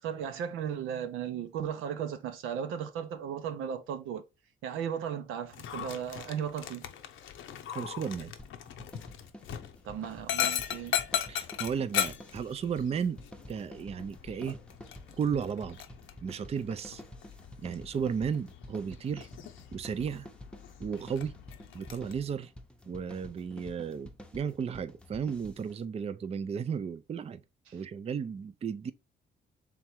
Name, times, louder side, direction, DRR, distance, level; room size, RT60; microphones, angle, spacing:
voice 1, 0.0-4.2 4.6-6.9 9.8-11.0 27.7-27.8, right 8 dB, 90° right, 0.7 m, -36 dB
Dog, 5.5-22.1, left 10 dB, 80° left, 0.7 m, -38 dB
voice 2, 7.7-8.3 11.3-13.2 13.5-14.6 15.2-15.8 16.2-17.0 17.6-19.3 19.7-20.3 20.8-21.3 21.7-22.5 22.9-27.4 27.7-28.9, right 7 dB, 30° right, 0.4 m, -34 dB
sound 1, 8.4-25.8, left 1 dB, 5° left, 0.7 m, -50 dB
3.6 x 3.0 x 4.4 m
cardioid pair, 90°, 20 cm